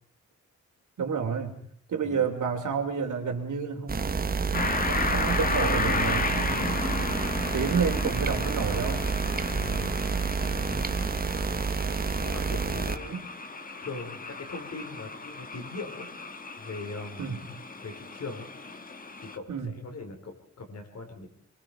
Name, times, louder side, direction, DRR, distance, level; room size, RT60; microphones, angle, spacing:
voice 1, 1.0-1.5 1.9-6.7 7.5-9.1 13.1-13.2 17.2-17.4 19.5-19.7, right 6 dB, 80° right, 4 dB, 3.4 m, -30 dB
voice 2, 2.0-2.3 9.4-10.0 10.5-10.9 12.2-13.1 13.8-16.1 16.6-17.4 17.8-18.5 19.2-21.3, left 3 dB, 60° left, 4 dB, 5.0 m, -40 dB
sound 1, 3.9-13.0, right 5 dB, 30° right, 1.0 m, -29 dB
sound 2, 4.5-19.4, left 3 dB, 30° left, 1.5 m, -34 dB
26.5 x 23.0 x 5.1 m, 0.62 s
wide cardioid pair, 175°, 30 cm